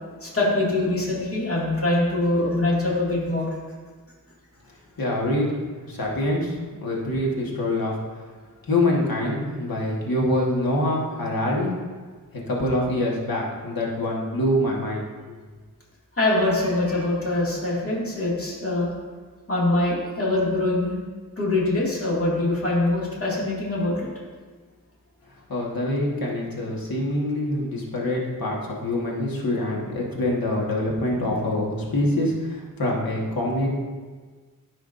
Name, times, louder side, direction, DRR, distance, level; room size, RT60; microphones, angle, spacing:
voice 1, 0.2-3.5 16.2-18.9 19.5-20.9 21.4-24.1, left 2 dB, 40° left, -6 dB, 2.3 m, -23 dB
voice 2, 5.0-8.0 8.6-11.7 12.5-15.0 25.5-33.7, left 1 dB, 85° left, -2 dB, 1.6 m, -25 dB
13.5 x 5.0 x 2.6 m, 1.4 s
wide cardioid pair, 120°, 34 cm